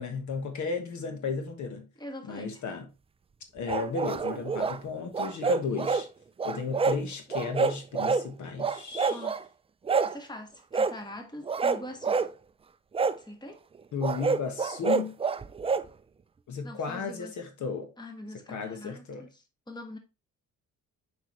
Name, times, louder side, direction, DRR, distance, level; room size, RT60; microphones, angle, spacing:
voice 1, 0.0-1.9 2.2-2.9 3.5-6.1 6.4-9.3 13.9-15.1 16.5-17.9 18.5-19.2, left 5 dB, 65° left, 1.5 m, -34 dB
voice 2, 2.0-2.6 9.1-9.3 10.0-12.3 13.2-13.6 16.6-17.3 18.0-20.0, left 1 dB, 15° left, 1.6 m, -43 dB
sound 1, 3.7-4.8 5.1-6.1 6.4-7.0 7.3-8.3 8.6-9.4 9.9-10.2 10.7-11.0 11.5-12.3 12.9-13.2 14.0-15.9, right 5 dB, 20° right, 0.4 m, -27 dB
6.3 x 5.2 x 3.0 m
cardioid pair, 110°, 31 cm